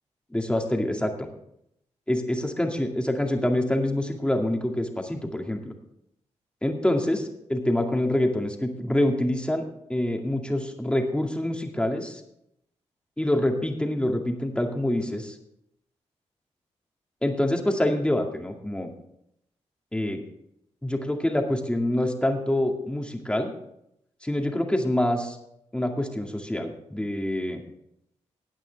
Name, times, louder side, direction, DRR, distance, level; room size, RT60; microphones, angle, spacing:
voice 1, 0.3-1.3 2.1-5.7 6.6-9.6 9.9-12.2 13.2-15.4 17.2-18.9 19.9-20.2 20.8-23.5 24.2-25.4 25.7-27.6, left 1 dB, 10° left, 2 dB, 2.1 m, -26 dB
16.0 x 9.0 x 3.5 m, 0.76 s
cardioid pair, 65°, 12 cm